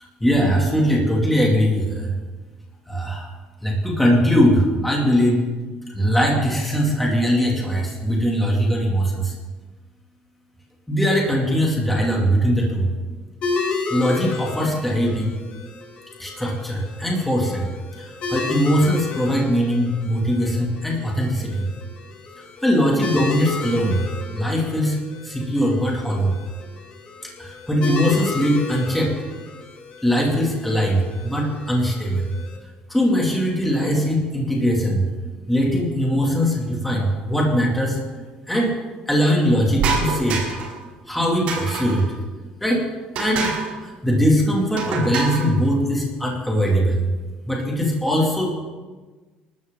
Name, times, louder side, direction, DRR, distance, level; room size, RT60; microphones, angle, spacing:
voice 1, 0.2-2.1 2.9-3.3 3.6-5.4 5.9-9.3 10.9-12.9 13.9-15.3 16.2-17.7 18.0-21.7 22.4-24.0 24.3-25.0 25.2-26.3 27.4-29.1 30.0-32.3 32.9-35.0 35.5-38.0 38.5-38.7 39.1-40.4 41.1-42.1 42.6-42.9 43.2-43.5 43.8-47.1 47.5-48.5, equal, 5° left, -2 dB, 2.6 m, -20 dB
sound 1, 13.4-32.6, left 4 dB, 40° left, 2.4 m, -33 dB
sound 2, 39.8-40.8 41.5-42.1 43.1-43.7 44.8-45.5, right 5 dB, 45° right, 6.1 m, -26 dB
28.0 x 12.5 x 3.8 m, 1.3 s
cardioid pair, 175°, 3 cm